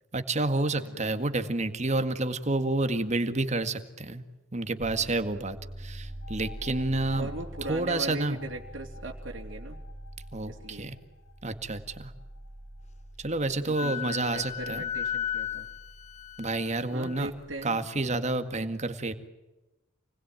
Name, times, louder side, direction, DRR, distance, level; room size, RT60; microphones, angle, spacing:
voice 1, 0.1-4.2 4.5-7.3 7.7-8.4 10.3-11.0 11.4-12.1 13.2-14.9 16.4-17.3 17.6-19.1, right 2 dB, 35° right, 9 dB, 2.0 m, -29 dB
voice 2, 0.7-1.1 7.1-9.8 10.5-10.9 13.6-15.7 16.9-17.9, right 2 dB, 85° right, 0 dB, 3.1 m, -39 dB
sound 1, 4.8-17.5, right 1 dB, 10° right, 3.5 m, -45 dB
sound 2, 6.0-13.4, left 6 dB, 75° left, 3.4 m, -53 dB
Wind instrument woodwind instrument, 13.7-17.2, left 10 dB, 40° left, 1.3 m, -35 dB
29.0 x 20.5 x 9.2 m, 1.1 s
head